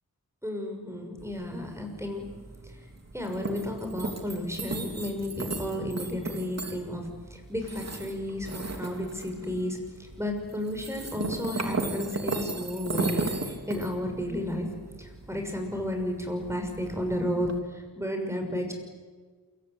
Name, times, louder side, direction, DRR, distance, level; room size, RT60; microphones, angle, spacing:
voice 1, 0.4-2.2 3.1-7.0 7.3-9.8 10.2-14.7 15.0-17.5 17.7-18.7, left 1 dB, 5° right, 4 dB, 6.4 m, -32 dB
sound 1, 1.2-17.6, right 3 dB, 45° right, 2.9 m, -37 dB
28.0 x 24.5 x 8.3 m, 1.5 s
wide cardioid pair, 100°, 37 cm